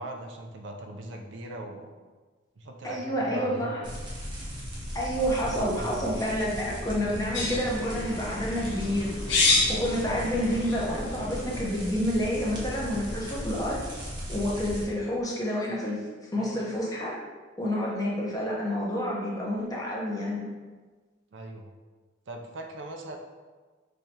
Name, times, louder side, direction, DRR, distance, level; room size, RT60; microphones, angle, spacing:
voice 1, 0.0-1.9 2.6-4.0 5.5-6.1 10.0-10.4 16.4-16.7 21.3-21.7 22.3-23.2, right 1 dB, 65° right, 2 dB, 0.5 m, -40 dB
voice 2, 2.8-3.8 4.9-9.1 9.5-13.8 14.3-16.1 16.3-17.1 17.6-20.5, equal, 20° left, -4 dB, 0.8 m, -29 dB
sound 1, 3.8-14.8, equal, 25° right, 0.8 m, -37 dB
sound 2, 7.3-11.8, left 3 dB, 65° left, 0.8 m, -29 dB
5.5 x 3.2 x 2.8 m, 1.4 s
head